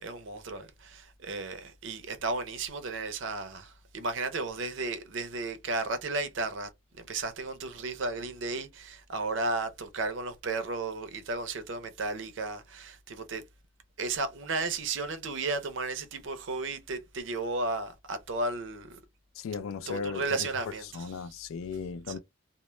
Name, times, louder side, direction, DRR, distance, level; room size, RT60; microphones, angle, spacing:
voice 1, 0.0-13.4 14.0-19.0 19.9-21.1, right 3 dB, 65° right, 0.5 m, -34 dB
voice 2, 19.3-20.5 20.9-22.2, left 5 dB, 85° left, 0.3 m, -36 dB
2.1 x 2.0 x 3.0 m
head